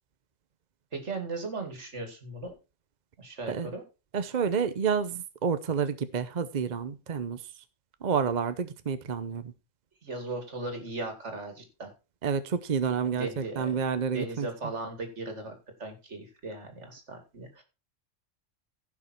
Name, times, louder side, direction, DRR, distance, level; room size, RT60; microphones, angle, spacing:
voice 1, 0.9-2.5 3.2-3.8 10.0-11.9 13.2-13.8 14.1-15.5 15.8-17.6, right 2 dB, 65° right, 5 dB, 2.8 m, -37 dB
voice 2, 4.1-7.5 8.0-9.5 12.2-14.5, right 6 dB, 40° right, 12 dB, 0.7 m, -29 dB
15.0 x 6.0 x 4.5 m, 0.30 s
omnidirectional pair, 1.3 m